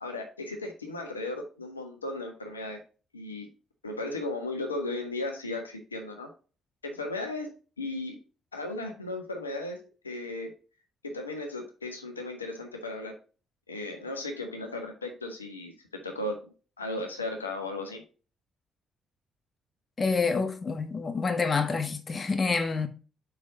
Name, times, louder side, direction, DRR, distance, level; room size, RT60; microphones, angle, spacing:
voice 1, 0.0-2.8 3.1-3.5 3.8-6.3 6.8-7.5 7.8-8.2 8.5-10.5 11.0-13.2 13.7-16.5 16.8-18.0, left 2 dB, 85° left, 1.2 m, -36 dB
voice 2, 20.0-22.9, left 4 dB, 35° left, 1.2 m, -27 dB
6.4 x 5.6 x 2.7 m
figure-of-eight pair, 45°, 0 cm